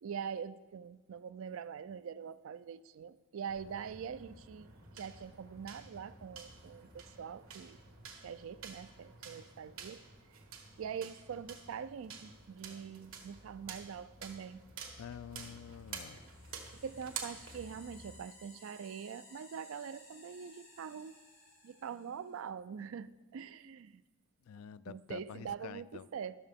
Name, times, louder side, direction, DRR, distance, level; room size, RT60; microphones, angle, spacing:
voice 1, 0.0-7.8 8.2-10.0 10.8-14.6 16.8-21.2 21.6-24.0 24.9-26.4, right 7 dB, 70° right, 15 dB, 0.4 m, -44 dB
sound 1, 3.5-18.2, right 5 dB, 90° right, 1.4 m, -50 dB
voice 2, 15.0-16.2 24.4-26.1, left 8 dB, 85° left, 16 dB, 0.3 m, -48 dB
sound 2, 15.6-22.4, left 2 dB, 35° left, 2.9 m, -59 dB
12.5 x 6.5 x 3.5 m, 1.2 s
head